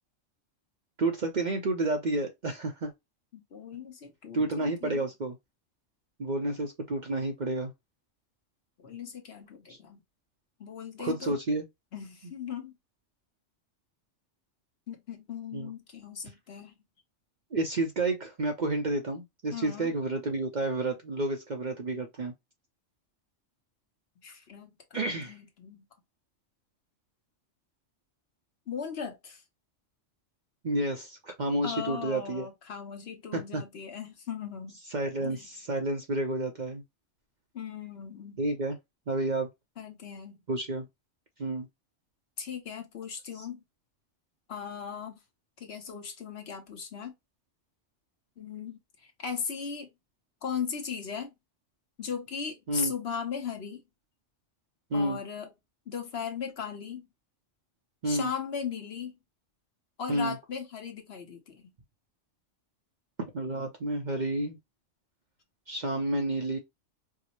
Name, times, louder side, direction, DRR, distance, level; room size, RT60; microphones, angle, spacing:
voice 1, 1.0-2.9 4.3-5.4 6.2-7.7 9.7-9.8 11.0-11.7 15.5-15.7 17.5-22.3 24.9-25.4 30.6-32.5 33.3-33.6 34.9-36.8 38.4-38.8 39.1-39.5 40.5-40.9 41.4-41.7 52.7-52.9 54.9-55.2 58.0-58.3 60.1-60.4 63.3-64.6 65.7-66.6, right 2 dB, 50° right, 0.6 m, -30 dB
voice 2, 3.3-5.0 8.8-10.0 10.6-11.3 11.9-12.7 14.9-16.7 19.5-19.9 24.2-25.9 28.7-29.4 31.6-34.7 35.2-35.4 37.5-38.4 39.8-40.4 42.4-43.6 44.5-45.2 45.6-47.1 48.4-49.9 50.4-51.3 52.0-53.8 54.9-55.5 55.9-57.1 58.0-59.2 60.0-61.7, left 7 dB, 60° left, 1.1 m, -38 dB
4.6 x 2.0 x 2.9 m
omnidirectional pair, 1.3 m